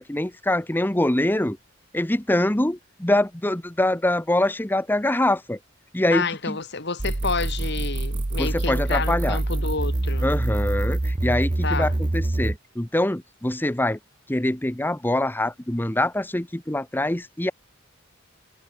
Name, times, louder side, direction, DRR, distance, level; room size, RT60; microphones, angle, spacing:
voice 1, 0.0-1.6 1.9-5.6 5.9-6.6 8.4-9.4 10.2-14.0 14.3-17.5, left 1 dB, 10° left, 0.9 m, -24 dB
voice 2, 6.1-10.3 11.6-12.0, left 4 dB, 55° left, 2.7 m, -29 dB
sound 1, 7.0-12.6, right 2 dB, 25° right, 0.6 m, -25 dB
head